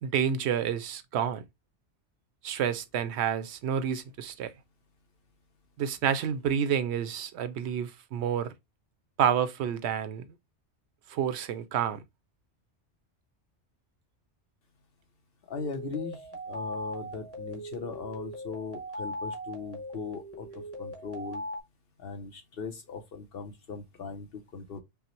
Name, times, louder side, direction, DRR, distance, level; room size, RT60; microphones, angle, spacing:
voice 1, 0.0-1.4 2.4-4.5 5.8-8.5 9.2-10.3 11.1-12.0, right 8 dB, 70° right, 0.8 m, -29 dB
voice 2, 15.5-16.2 16.5-20.5 20.8-21.4 22.0-24.3 24.5-24.8, left 4 dB, 60° left, 0.8 m, -38 dB
sound 1, 15.5-21.6, equal, 15° left, 1.0 m, -40 dB
5.5 x 2.0 x 3.0 m
omnidirectional pair, 1.2 m